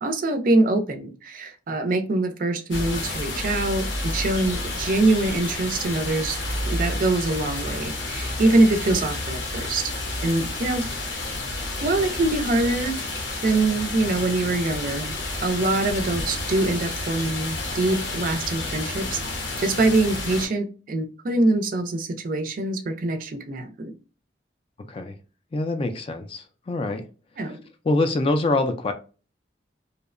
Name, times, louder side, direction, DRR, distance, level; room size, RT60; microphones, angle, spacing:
voice 1, 0.0-6.4 6.6-9.9 10.2-10.9 11.2-11.3 11.8-13.0 13.4-15.2 15.4-19.2 19.6-23.9 27.4-27.6, right 2 dB, 50° right, 0.4 m, -24 dB
sound 1, 2.7-20.5, left 2 dB, 85° left, 0.8 m, -30 dB
voice 2, 25.5-27.0 27.9-28.9, left 2 dB, 30° left, 0.3 m, -24 dB
2.7 x 2.1 x 2.4 m
head